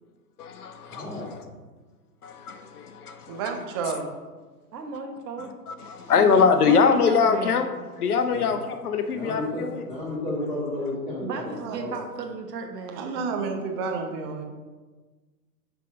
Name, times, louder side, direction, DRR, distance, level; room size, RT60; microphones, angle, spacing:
voice 1, 0.4-1.4 2.2-3.4 5.7-7.7 8.0-9.8, left 5 dB, 65° left, 8 dB, 0.9 m, -23 dB
voice 2, 0.9-1.3 8.3-8.5 9.1-11.4 11.7-12.0, left 1 dB, 15° left, -8 dB, 2.7 m, -32 dB
voice 3, 3.3-4.1 11.4-11.8 12.9-14.4, right 4 dB, 15° right, 3 dB, 0.5 m, -30 dB
voice 4, 4.7-5.6 6.1-7.6 11.2-13.0, right 4 dB, 75° right, 4 dB, 1.5 m, -35 dB
10.0 x 3.6 x 5.1 m, 1.3 s
hypercardioid pair, 135°, 49 cm